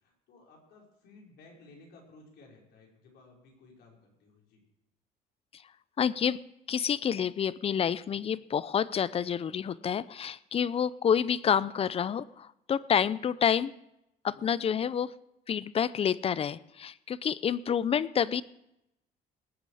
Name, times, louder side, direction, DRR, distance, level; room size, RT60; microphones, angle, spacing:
voice 1, 0.0-4.6, left 3 dB, 70° left, -1 dB, 5.3 m, -56 dB
voice 2, 6.0-6.4 6.7-13.7 14.2-15.1 15.5-18.4, left 8 dB, 35° left, 18 dB, 0.6 m, -28 dB
20.5 x 9.4 x 4.9 m, 0.85 s
cardioid pair, 110°, 17 cm